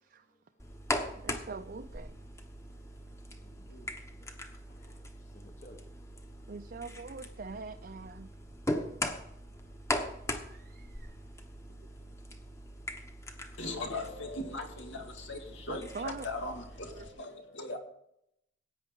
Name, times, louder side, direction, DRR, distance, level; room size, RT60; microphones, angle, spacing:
sound 1, 0.6-17.1, left 1 dB, 15° left, 1.1 m, -40 dB
voice 1, 1.2-2.2 6.5-8.3 10.5-11.1 15.7-16.3 16.9-17.1, right 4 dB, 50° right, 6 dB, 0.5 m, -43 dB
voice 2, 3.4-3.9 4.2-4.3 4.7-4.9 5.3-5.9, left 1 dB, 40° left, 2 dB, 1.2 m, -55 dB
voice 3, 13.6-17.8, left 2 dB, 80° left, 3 dB, 2.3 m, -39 dB
16.0 x 9.2 x 3.8 m, 0.76 s
head